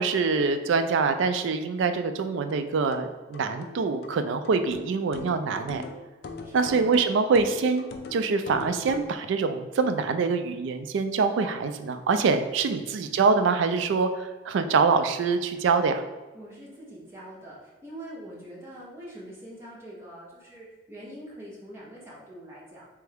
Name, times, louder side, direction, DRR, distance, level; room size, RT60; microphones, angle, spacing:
voice 1, 0.0-5.8 6.5-7.9 8.1-16.0, right 4 dB, 70° right, 8 dB, 0.3 m, -25 dB
sound 1, 2.5-9.2, left 3 dB, 50° left, 0.4 m, -41 dB
voice 2, 6.4-7.6 12.8-13.0 16.3-22.9, right 1 dB, 15° right, -7 dB, 1.0 m, -44 dB
3.5 x 3.3 x 3.4 m, 1.2 s
head